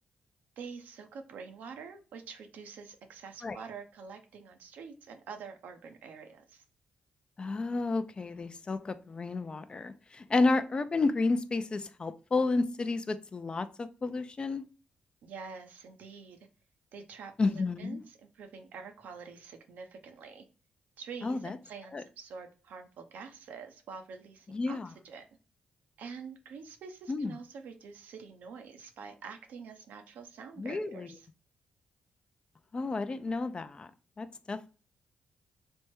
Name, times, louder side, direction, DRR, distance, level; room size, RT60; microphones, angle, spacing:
voice 1, 0.6-6.6 15.2-16.4 16.9-20.5 21.0-25.3 26.0-31.3, right 5 dB, 80° right, 0.6 m, -46 dB
voice 2, 7.4-14.7 17.4-18.0 21.2-21.6 21.9-22.0 24.5-24.9 27.1-27.3 30.6-31.1 32.7-33.9 34.2-34.7, left 3 dB, 35° left, 0.4 m, -31 dB
3.3 x 2.1 x 2.9 m
cardioid pair, 75°, 3 cm